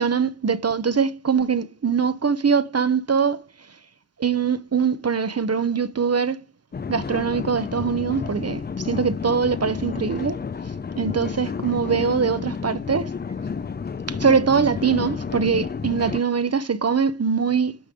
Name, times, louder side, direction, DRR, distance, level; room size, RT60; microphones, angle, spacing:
voice 1, 0.0-3.4 4.2-6.4 6.9-10.4 11.0-13.1 14.1-17.8, right 6 dB, 50° right, 0.7 m, -22 dB
sound 1, 6.7-16.2, left 5 dB, 35° left, 0.4 m, -31 dB
9.4 x 5.1 x 4.9 m
wide cardioid pair, 75°, 31 cm